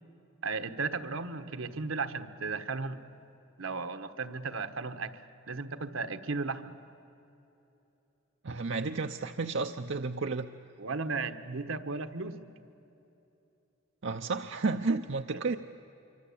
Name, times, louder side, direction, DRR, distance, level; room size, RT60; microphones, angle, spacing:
voice 1, 0.4-3.0 3.6-5.2 5.5-6.7 10.8-12.5 15.3-15.6, right 4 dB, 75° right, 8 dB, 1.3 m, -35 dB
voice 2, 8.4-10.5 14.0-15.6, right 3 dB, 60° right, 6 dB, 0.7 m, -32 dB
26.5 x 24.5 x 8.5 m, 3.0 s
head